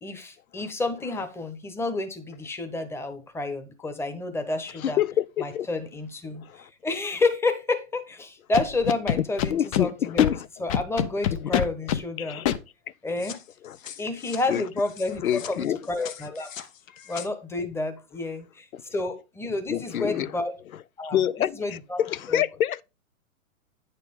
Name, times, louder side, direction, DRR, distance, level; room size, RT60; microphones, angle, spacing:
voice 1, 0.0-5.0 5.4-12.4 13.0-13.4 14.0-16.5 17.1-20.5 21.0-22.0 22.3-22.4, left 2 dB, 5° left, 0.9 m, -30 dB
voice 2, 4.8-5.7 6.4-6.6 9.5-10.5 11.3-11.5 12.2-12.5 13.6-13.8 14.5-14.6 15.2-15.8 18.7-18.8 19.7-20.3 21.1-22.8, left 10 dB, 90° left, 0.5 m, -26 dB
Scratching (performance technique), 8.5-9.8 10.2-10.3 10.7-12.0 12.5-12.6, left 10 dB, 25° left, 0.4 m, -24 dB
sound 1, 13.2-17.3, left 9 dB, 70° left, 1.1 m, -43 dB
9.3 x 6.8 x 3.6 m
hypercardioid pair, 120°, 41 cm